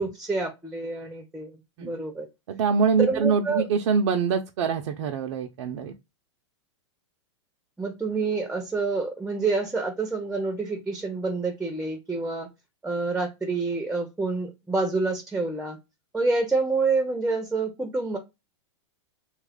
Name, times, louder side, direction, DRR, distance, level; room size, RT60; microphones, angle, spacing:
voice 1, 0.0-2.3 3.0-3.7 7.8-12.5 12.8-15.8 16.1-18.2, right 3 dB, 5° right, 0.6 m, -27 dB
voice 2, 2.5-5.9, right 6 dB, 70° right, 0.5 m, -24 dB
3.0 x 2.3 x 3.4 m
hypercardioid pair, 125°, 15 cm